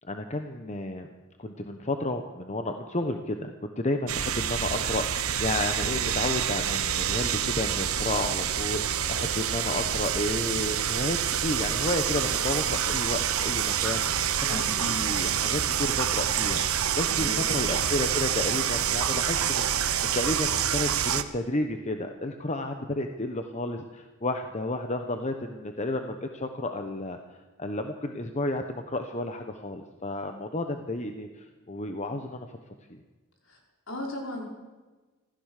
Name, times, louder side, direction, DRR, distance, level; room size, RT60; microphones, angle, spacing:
voice 1, 0.0-1.1 1.4-27.2 27.6-32.5 32.9-33.0, left 2 dB, 35° left, 6 dB, 1.1 m, -32 dB
sound 1, 4.1-21.2, right 9 dB, 85° right, 1.1 m, -27 dB
voice 2, 14.4-14.8 17.0-17.6 33.5-33.6 33.9-34.4, left 1 dB, 65° left, 0 dB, 5.8 m, -37 dB
25.5 x 15.5 x 6.7 m, 1.3 s
head